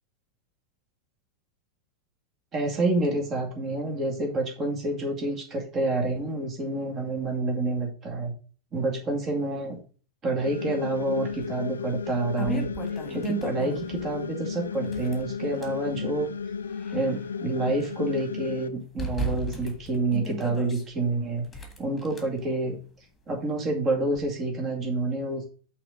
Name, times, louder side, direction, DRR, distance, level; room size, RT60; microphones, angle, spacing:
voice 1, 2.5-8.3 8.7-9.8 10.2-12.7 13.1-16.3 16.9-21.5 21.8-22.8 23.3-25.4, right 2 dB, 30° right, 1 dB, 2.3 m, -28 dB
sound 1, 10.4-18.7, left 6 dB, 70° left, 0.3 m, -34 dB
sound 2, 11.4-11.5 12.0-14.1 14.8-15.8 16.4-17.9 18.2-18.3 19.0-20.8 21.5-22.2, equal, 15° left, 1.6 m, -35 dB
6.0 x 4.0 x 6.1 m, 0.39 s
figure-of-eight pair, 90°, 0 cm